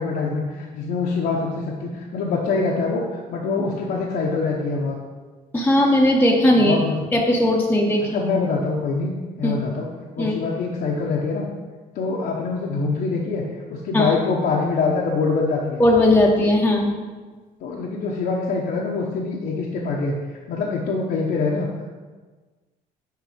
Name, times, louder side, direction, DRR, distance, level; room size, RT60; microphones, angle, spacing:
voice 1, 0.0-5.0 6.6-7.0 8.1-9.1 9.4-9.9 10.1-11.5 11.9-15.8 17.6-21.9, left 4 dB, 65° left, -2 dB, 0.9 m, -24 dB
voice 2, 5.5-6.7 7.1-8.2 9.4-9.5 10.2-10.3 13.9-14.1 15.8-16.9, left 1 dB, 10° left, -1 dB, 0.8 m, -17 dB
6.7 x 4.3 x 5.0 m, 1.4 s
cardioid pair, 110°, 17 cm